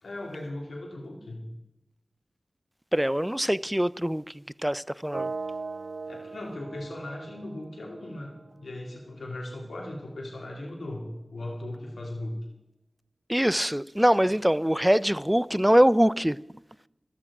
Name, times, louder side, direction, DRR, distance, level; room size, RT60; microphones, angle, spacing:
voice 1, 0.0-1.4 6.1-11.0 11.3-12.3, left 1 dB, 85° left, 2.7 m, -38 dB
voice 2, 2.9-5.3 13.3-16.4, equal, 10° right, 0.4 m, -23 dB
sound 1, 5.1-9.1, right 3 dB, 65° right, 0.5 m, -39 dB
14.5 x 12.5 x 4.9 m
cardioid pair, 50°, 0 cm